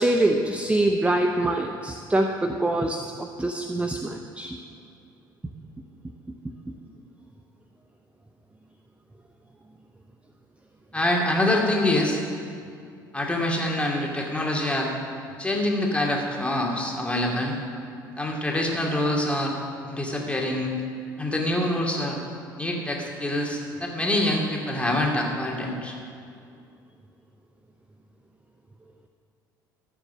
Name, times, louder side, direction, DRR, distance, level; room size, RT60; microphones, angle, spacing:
voice 1, 0.0-4.6, right 1 dB, 10° right, 5 dB, 0.8 m, -24 dB
voice 2, 10.9-12.2 13.1-14.9 15.4-17.6 18.2-19.6 19.8-20.8 21.2-22.2 22.6-25.9, left 1 dB, 10° left, -1 dB, 2.6 m, -25 dB
14.0 x 7.4 x 6.4 m, 2.4 s
figure-of-eight pair, 60°, 11 cm